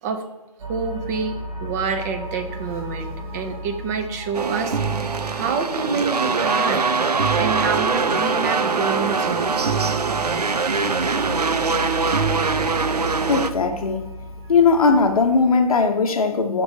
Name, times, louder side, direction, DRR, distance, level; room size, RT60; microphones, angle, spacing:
sound 1, 0.6-15.9, equal, 60° right, 1.8 m, -36 dB
voice 1, 0.7-1.3 1.6-6.9 7.3-9.6, right 5 dB, 25° right, 0.5 m, -27 dB
sound 2, 4.3-13.5, right 4 dB, 90° right, 0.5 m, -22 dB
voice 2, 13.3-14.1 14.5-16.6, left 4 dB, 65° left, 0.9 m, -18 dB
5.5 x 3.4 x 5.4 m
figure-of-eight pair, 125°, 20 cm